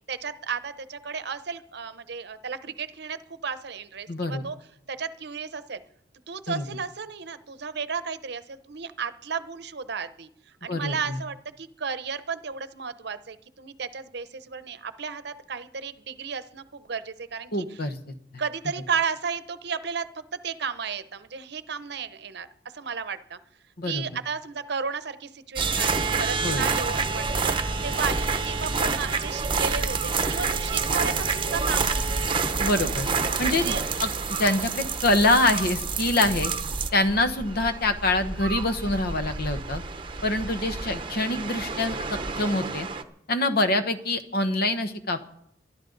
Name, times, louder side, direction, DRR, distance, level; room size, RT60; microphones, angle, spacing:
voice 1, 0.0-4.6 4.9-5.8 6.3-10.3 10.6-17.8 18.4-22.5 22.7-23.4 23.8-27.6 27.8-32.3 33.5-33.8, right 6 dB, 65° right, 13 dB, 0.8 m, -33 dB
voice 2, 4.1-4.4 6.5-6.6 10.7-11.2 17.5-18.0 23.8-24.0 26.4-26.7 32.6-33.1 33.4-33.7 34.0-34.1 34.4-36.5 36.9-39.8 40.2-42.9 43.3-45.2, left 2 dB, 60° left, 9 dB, 1.1 m, -25 dB
sound 1, 25.6-43.0, right 4 dB, 30° right, 0.9 m, -28 dB
23.5 x 11.5 x 4.0 m, 0.76 s
head